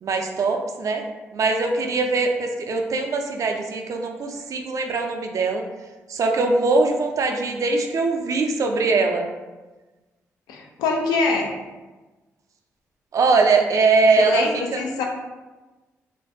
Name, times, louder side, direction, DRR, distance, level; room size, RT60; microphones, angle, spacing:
voice 1, 0.0-1.0 1.3-5.6 6.1-9.3 13.1-14.4 14.7-14.8, right 3 dB, 55° right, 3 dB, 0.4 m, -21 dB
voice 2, 10.5-11.5 14.2-15.0, left 3 dB, 85° left, 1 dB, 0.3 m, -24 dB
2.5 x 2.2 x 2.4 m, 1.2 s
hypercardioid pair, 45°, 7 cm